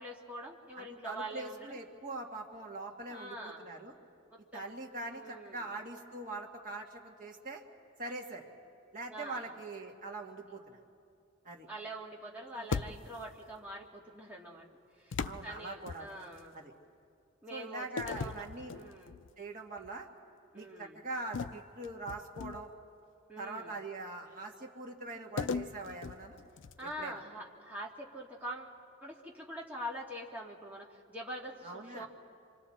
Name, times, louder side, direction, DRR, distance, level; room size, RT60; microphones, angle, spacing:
voice 1, 0.0-1.8 3.1-3.6 4.3-4.7 5.1-5.7 9.1-9.5 11.7-14.7 15.0-16.6 17.4-18.5 18.7-19.2 20.5-21.0 23.3-23.8 26.8-28.7 29.0-32.1, right 1 dB, 5° right, -4 dB, 2.0 m, -44 dB
voice 2, 0.8-3.9 4.5-7.6 8.0-8.5 8.9-10.8 11.4-11.7 12.5-12.7 15.2-16.2 16.5-16.7 17.5-18.7 19.4-20.1 20.5-22.7 23.4-26.4 26.8-27.2 31.6-32.1, right 2 dB, 40° right, 0 dB, 1.9 m, -43 dB
sound 1, 12.7-13.4 15.1-16.5 18.0-19.3 19.8-20.0 21.3-22.8 25.4-27.0, left 5 dB, 60° left, 0.4 m, -39 dB
26.5 x 25.5 x 4.3 m, 2.4 s
head